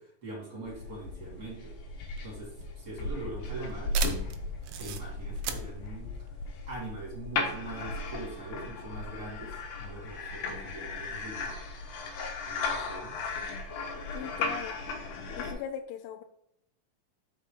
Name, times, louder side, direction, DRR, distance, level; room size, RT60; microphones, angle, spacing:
voice 1, 0.0-1.7 2.2-3.9 4.8-6.2 6.7-11.6 12.5-13.2, right 2 dB, 25° right, -3 dB, 3.4 m, -42 dB
sound 1, 0.7-15.5, left 3 dB, 65° left, 2.8 m, -36 dB
sound 2, 2.0-7.2, right 10 dB, 75° right, 2.3 m, -39 dB
voice 2, 14.1-14.8 15.4-16.2, left 9 dB, 90° left, 6 dB, 2.4 m, -39 dB
6.5 x 5.3 x 5.3 m, 0.78 s
omnidirectional pair, 4.1 m